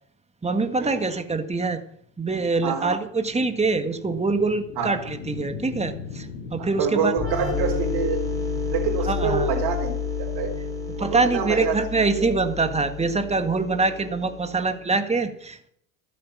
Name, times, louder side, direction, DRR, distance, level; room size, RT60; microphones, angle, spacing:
voice 1, 0.4-1.8 2.2-7.1 9.1-9.5 11.0-15.7, right 3 dB, 15° right, 8 dB, 1.8 m, -24 dB
sound 1, 2.0-12.7, left 6 dB, 80° left, 2.3 m, -42 dB
voice 2, 6.6-8.2 8.7-9.9 10.2-10.5 10.9-11.9, right 6 dB, 60° right, -1 dB, 3.8 m, -26 dB
sound 2, 7.2-14.7, left 5 dB, 10° left, 4.1 m, -30 dB
13.5 x 9.5 x 7.3 m, 0.68 s
hypercardioid pair, 80°, 43 cm